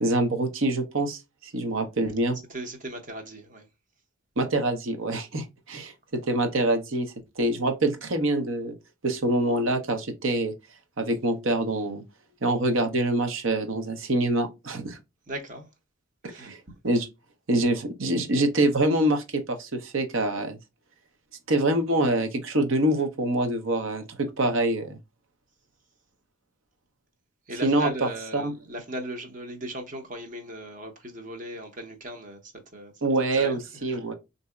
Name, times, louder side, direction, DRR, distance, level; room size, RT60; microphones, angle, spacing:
voice 1, 0.0-2.4 4.4-8.7 9.0-10.5 11.0-12.0 12.4-15.0 16.3-16.6 16.8-17.1 17.5-20.6 21.5-25.0 27.6-28.5 33.0-34.1, right 1 dB, 70° right, 0.8 m, -25 dB
voice 2, 2.5-3.7 15.3-15.7 16.3-16.5 27.5-32.9 33.3-33.6 33.9-34.0, right 1 dB, 40° right, 0.7 m, -37 dB
3.9 x 2.7 x 2.2 m
head